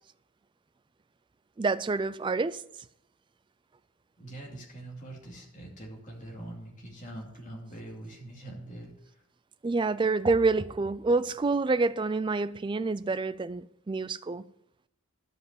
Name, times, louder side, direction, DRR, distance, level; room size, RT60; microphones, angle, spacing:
voice 1, 1.6-2.6 9.6-14.4, right 3 dB, 20° right, 0.3 m, -27 dB
voice 2, 4.2-9.2, right 1 dB, 35° left, 2.7 m, -43 dB
12.0 x 5.5 x 7.5 m
head